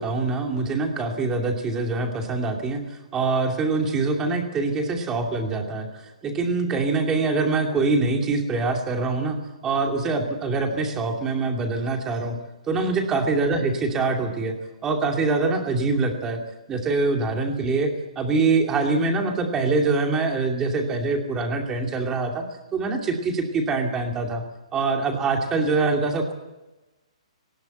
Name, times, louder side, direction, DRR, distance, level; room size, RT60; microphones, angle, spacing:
voice 1, 0.0-5.9 6.2-9.4 9.6-12.4 12.7-14.6 14.8-16.4 16.7-17.9 18.2-22.4 22.7-24.4 24.7-26.3, right 3 dB, 10° right, 3 dB, 2.6 m, -24 dB
19.5 x 17.5 x 8.0 m, 1.1 s
hypercardioid pair, 165°, 4 cm